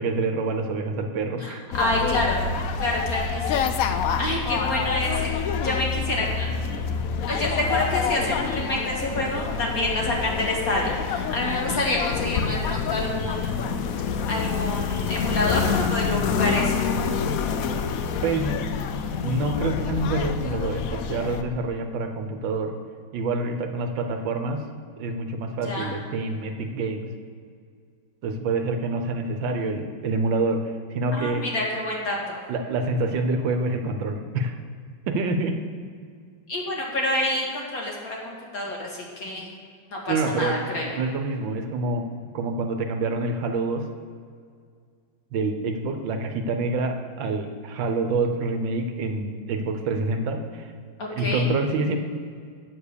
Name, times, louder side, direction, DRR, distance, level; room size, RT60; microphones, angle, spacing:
voice 1, 0.0-1.6 18.2-18.6 19.2-22.8 23.1-24.6 25.0-27.1 28.2-31.4 32.5-34.6 35.1-35.6 40.1-40.6 40.9-42.1 42.3-43.9 45.3-50.7 51.1-52.0, right 3 dB, 75° right, 6 dB, 1.5 m, -27 dB
voice 2, 1.4-2.4 2.8-3.6 4.2-5.4 5.6-6.8 7.3-13.7 14.3-16.9 25.6-26.0 31.1-32.4 36.5-39.5 39.9-40.9 51.0-51.5, left 1 dB, 45° left, -2 dB, 2.2 m, -28 dB
sound 1, 1.7-21.4, left 6 dB, 80° left, 0.7 m, -27 dB
8.4 x 7.1 x 6.7 m, 2.1 s
omnidirectional pair, 2.1 m